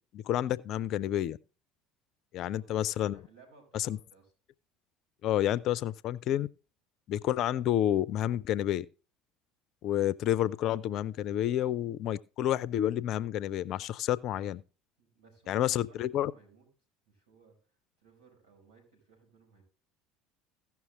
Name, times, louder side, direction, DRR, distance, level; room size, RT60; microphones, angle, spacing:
voice 1, 0.1-1.4 2.3-3.2 3.7-4.0 5.2-6.5 7.1-8.9 9.8-14.6 15.5-16.3, left 12 dB, 50° left, 0.4 m, -29 dB
voice 2, 2.4-2.8 3.1-4.3 15.0-16.7 17.0-17.6 18.0-19.6, right 5 dB, 75° right, 5.2 m, -61 dB
15.5 x 6.0 x 3.7 m
figure-of-eight pair, 65°, 0 cm